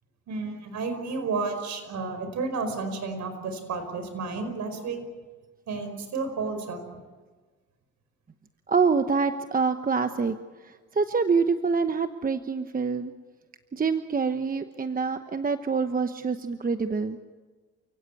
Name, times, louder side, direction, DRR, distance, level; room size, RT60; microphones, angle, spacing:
voice 1, 0.3-5.0 5.7-6.8, right 4 dB, 70° right, 8 dB, 5.0 m, -31 dB
voice 2, 8.7-10.4 10.6-13.1 13.7-17.2, right 5 dB, 30° right, 9 dB, 1.0 m, -26 dB
29.0 x 16.5 x 8.5 m, 1.4 s
cardioid pair, 90°, 30 cm